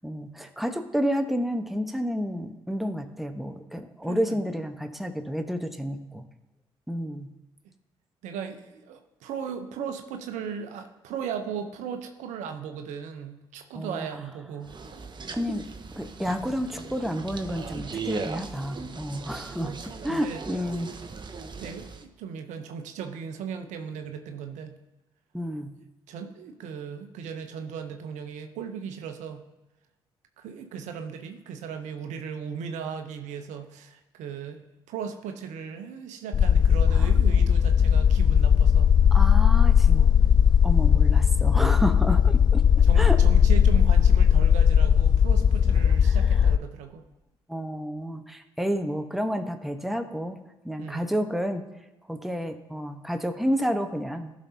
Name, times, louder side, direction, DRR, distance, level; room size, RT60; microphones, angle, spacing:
voice 1, 0.0-6.2 6.9-7.3 13.7-14.1 15.3-15.6 16.0-20.9 25.3-25.7 36.9-37.1 39.1-40.1 40.6-42.6 43.0-43.2 46.0-46.2 47.5-50.4 50.6-51.6 52.1-54.3, equal, ahead, 6 dB, 1.1 m, -30 dB
voice 2, 4.0-4.4 8.2-14.7 19.6-19.8 20.1-20.4 21.6-24.7 26.1-29.4 30.4-34.6 34.9-38.9 42.8-47.0 50.8-51.0, right 7 dB, 70° right, 6 dB, 0.9 m, -37 dB
sound 1, 14.6-22.0, right 4 dB, 35° right, 1.0 m, -38 dB
sound 2, 36.3-46.6, left 8 dB, 35° left, 0.3 m, -18 dB
15.5 x 6.1 x 2.8 m, 1.0 s
hypercardioid pair, 45°, 13 cm